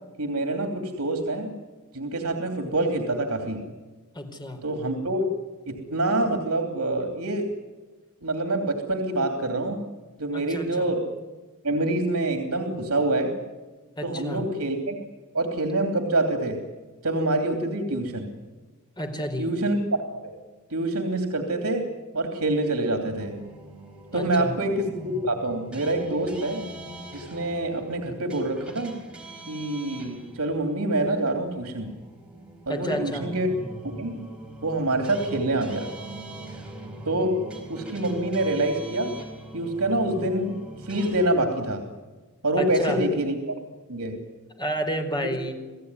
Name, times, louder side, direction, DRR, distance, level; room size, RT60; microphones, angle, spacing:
voice 1, 0.2-1.5 1.9-3.6 4.6-5.2 5.7-7.5 8.2-9.8 10.2-11.0 11.6-13.4 14.0-15.0 15.3-16.6 17.0-18.3 19.4-19.8 20.1-20.3 20.7-21.9 22.1-23.3 24.1-26.6 27.1-29.0 29.5-31.9 32.7-33.5 34.0-34.2 34.6-35.9 37.0-37.4 37.7-39.2 39.5-41.8 42.4-43.5 43.9-44.2 45.2-45.3, right 2 dB, 80° right, 4 dB, 3.1 m, -26 dB
voice 2, 4.1-4.6 10.3-10.9 14.0-14.4 19.0-19.5 24.1-24.5 32.7-33.3 42.6-43.0 44.6-45.5, equal, 20° left, 4 dB, 4.5 m, -30 dB
sound 1, 23.2-41.3, right 1 dB, 5° right, 5.0 m, -41 dB
29.0 x 17.5 x 9.8 m, 1.3 s
head